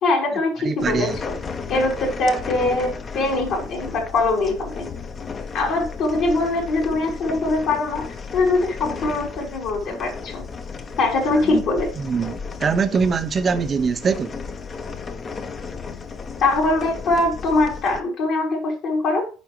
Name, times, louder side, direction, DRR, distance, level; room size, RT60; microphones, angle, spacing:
voice 1, 0.0-1.3 1.7-4.9 5.5-8.0 8.3-10.4 11.0-11.9 16.4-19.3, left 2 dB, 65° left, 2.9 m, -22 dB
voice 2, 0.6-1.2 11.4-11.6 12.0-14.3, right 5 dB, 35° right, 0.8 m, -23 dB
sound 1, 0.8-18.0, left 5 dB, 35° left, 0.8 m, -34 dB
8.3 x 4.8 x 3.1 m
hypercardioid pair, 70°, 0 cm